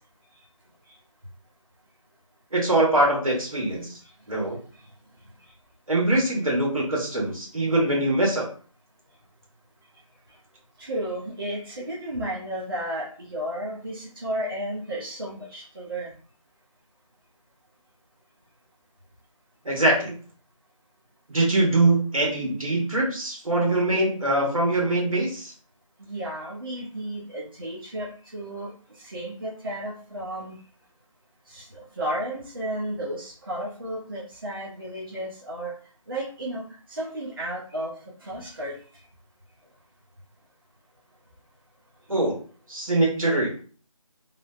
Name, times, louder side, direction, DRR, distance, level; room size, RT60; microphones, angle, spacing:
voice 1, 2.5-3.9 4.3-4.6 5.9-8.5 19.6-20.1 21.3-25.5 42.1-42.4 42.7-43.5, right 2 dB, 75° right, -2 dB, 1.4 m, -23 dB
voice 2, 10.8-16.1 26.0-28.7 29.0-30.6 31.5-35.7 36.1-36.6 36.9-37.9 38.2-38.7, right 1 dB, 40° right, -5 dB, 0.7 m, -33 dB
3.1 x 2.0 x 2.4 m, 0.41 s
figure-of-eight pair, 165°, 18 cm